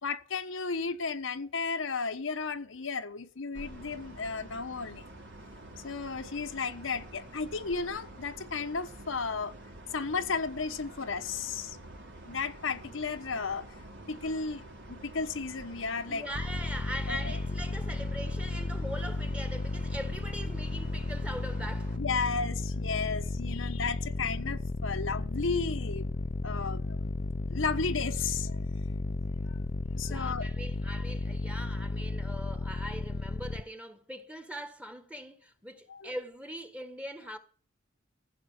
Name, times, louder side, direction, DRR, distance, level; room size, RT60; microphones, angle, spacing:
voice 1, 0.0-5.1 5.8-9.5 9.9-11.8 12.2-13.6 14.1-16.2 17.1-17.3 22.0-26.1 26.4-27.0 27.5-28.7 29.5-29.6 29.9-30.5 35.9-36.1, left 4 dB, 70° left, 1.1 m, -34 dB
sound 1, 3.5-22.0, right 1 dB, 60° right, 3.3 m, -48 dB
voice 2, 16.1-21.9 30.0-37.4, equal, 5° right, 1.6 m, -41 dB
sound 2, 16.3-33.6, left 2 dB, 40° left, 0.6 m, -34 dB
15.5 x 7.7 x 7.4 m
head